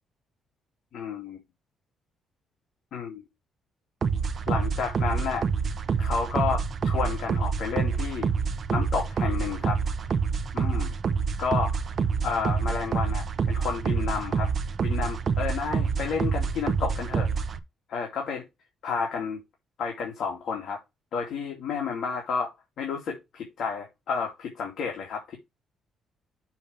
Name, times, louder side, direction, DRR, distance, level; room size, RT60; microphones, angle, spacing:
voice 1, 0.9-1.4 2.9-3.2 4.5-5.5 6.0-8.3 8.7-9.8 10.5-10.9 11.4-11.8 12.2-14.5 14.8-17.3 17.9-18.4 18.8-19.4 19.8-20.8 21.1-22.5 22.8-25.4, left 5 dB, 65° left, 2.8 m, -31 dB
sound 1, 4.0-17.6, right 5 dB, 40° right, 0.9 m, -27 dB
7.1 x 6.9 x 3.4 m
cardioid pair, 135°, 0 cm